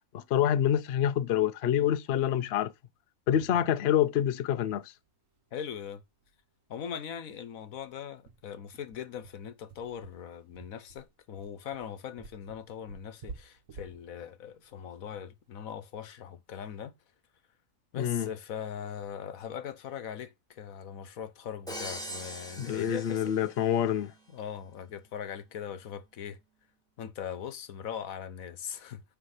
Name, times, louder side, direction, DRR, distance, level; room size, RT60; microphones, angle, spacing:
voice 1, 0.1-2.7 3.3-4.9 18.0-18.3 22.6-24.1, left 10 dB, 60° left, 0.7 m, -27 dB
sound 1, 5.4-5.5 5.8-5.9 6.2-6.4 6.7-6.8 7.3-15.7, right 5 dB, 70° right, 1.5 m, -51 dB
voice 2, 5.5-6.0 6.7-16.9 17.9-23.5 24.3-26.4 27.0-29.0, left 8 dB, 80° left, 1.3 m, -40 dB
Crash cymbal, 21.7-23.9, equal, 5° left, 1.9 m, -42 dB
9.6 x 3.4 x 6.5 m
omnidirectional pair, 1.4 m